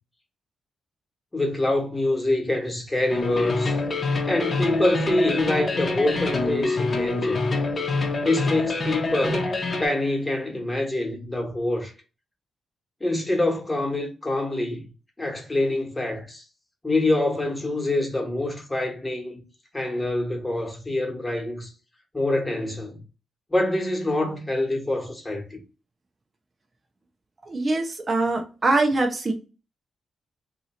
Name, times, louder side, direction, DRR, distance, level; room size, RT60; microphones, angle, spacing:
voice 1, 1.3-3.8 4.2-7.4 8.2-9.4 9.8-11.9 13.0-14.9 15.2-16.4 16.8-19.4 19.7-21.7 22.1-23.0 23.5-25.6, left 2 dB, 15° left, 1.2 m, -25 dB
sound 1, 3.1-9.9, left 3 dB, 40° left, 0.9 m, -26 dB
voice 2, 27.5-29.3, right 2 dB, 30° right, 0.7 m, -23 dB
2.8 x 2.7 x 4.2 m
cardioid pair, 100°, 0 cm